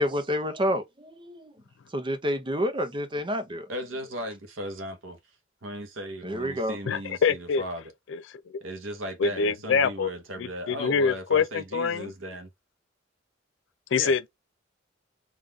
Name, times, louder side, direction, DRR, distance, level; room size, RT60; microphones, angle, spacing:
voice 1, 0.0-1.5 1.9-3.7 6.2-6.8, equal, 25° right, 0.7 m, -28 dB
voice 2, 3.7-5.2 5.6-7.9 8.6-12.5 13.9-14.1, equal, 80° right, 1.0 m, -37 dB
voice 3, 6.9-7.6 8.1-8.6 9.2-10.1 10.4-12.1 13.9-14.3, left 5 dB, 65° left, 0.4 m, -25 dB
3.8 x 2.4 x 3.3 m
head